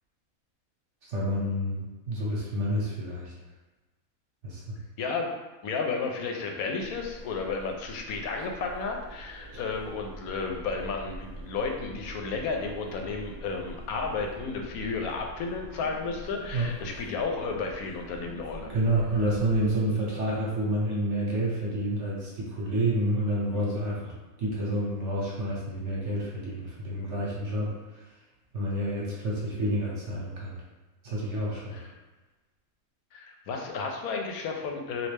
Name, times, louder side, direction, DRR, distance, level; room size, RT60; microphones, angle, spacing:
voice 1, 1.0-3.3 4.4-4.8 16.5-16.7 18.7-24.1 24.4-28.1 28.5-30.5 31.0-31.8, right 1 dB, 60° right, -5 dB, 1.1 m, -29 dB
voice 2, 5.0-5.3 5.6-18.7 31.7-31.8 33.1-35.1, left 4 dB, 85° left, 2 dB, 1.0 m, -32 dB
sound 1, 6.8-19.8, right 1 dB, 90° right, 0.4 m, -45 dB
3.1 x 2.6 x 3.3 m, 1.2 s
omnidirectional pair, 1.5 m